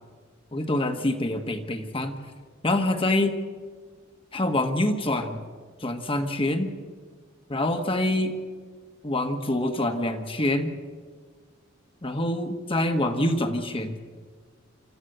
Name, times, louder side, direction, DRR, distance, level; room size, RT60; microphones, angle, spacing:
voice 1, 0.5-2.1 2.6-3.3 4.3-5.4 5.8-6.7 7.5-8.3 9.0-10.7 12.0-14.0, left 1 dB, 25° left, 6 dB, 1.4 m, -25 dB
27.0 x 13.5 x 7.9 m, 1.6 s
head